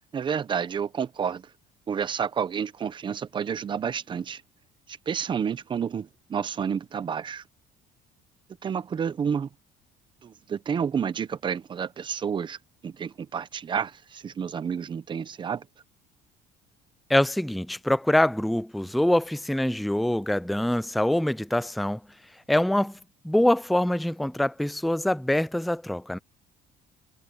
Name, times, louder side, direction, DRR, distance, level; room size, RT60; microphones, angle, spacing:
voice 1, 0.1-1.4 1.9-4.4 4.9-7.4 8.6-9.5 10.2-12.6 12.8-15.6, right 7 dB, 25° right, 0.8 m, -30 dB
voice 2, 17.1-22.0 22.5-23.0 23.2-26.2, left 1 dB, ahead, 0.4 m, -24 dB
cardioid pair, 155°, 18 cm